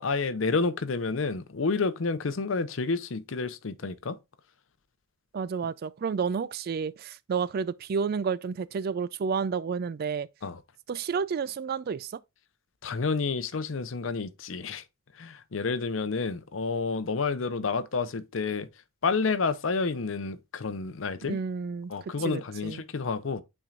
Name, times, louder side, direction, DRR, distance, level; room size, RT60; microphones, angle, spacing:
voice 1, 0.0-4.2 10.4-10.6 12.8-14.8 15.1-18.7 19.0-21.4 21.9-23.4, left 4 dB, 90° left, 0.6 m, -29 dB
voice 2, 5.3-10.3 10.9-12.2 21.2-21.9 22.2-22.8, right 6 dB, 50° right, 0.3 m, -30 dB
8.9 x 4.5 x 2.4 m
head